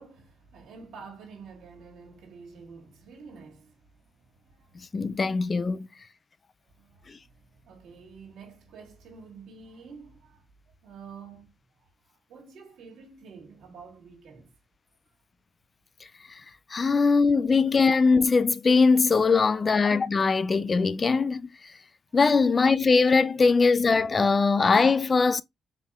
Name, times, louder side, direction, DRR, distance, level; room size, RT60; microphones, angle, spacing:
voice 1, 0.0-5.2 6.7-10.4 10.8-11.5 11.8-14.5 15.1-15.2 16.7-16.9 22.1-22.2 24.3-24.4, right 5 dB, 80° right, 2.0 m, -49 dB
voice 2, 4.9-5.9 16.7-21.4 22.1-25.4, left 4 dB, 40° left, 0.4 m, -21 dB
4.5 x 3.6 x 2.3 m
supercardioid pair, 60°, 0 cm